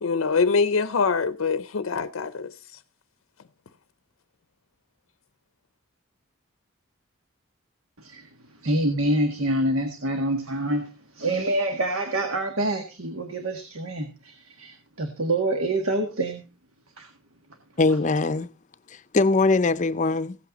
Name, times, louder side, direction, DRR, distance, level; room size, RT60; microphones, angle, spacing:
voice 1, 0.0-2.8, left 5 dB, 80° left, 0.6 m, -24 dB
voice 2, 8.0-8.3 8.6-16.4 17.0-17.1, right 1 dB, 85° right, 1.7 m, -26 dB
voice 3, 17.8-18.5 18.9-20.4, left 3 dB, 35° left, 0.6 m, -22 dB
16.0 x 8.5 x 4.0 m
head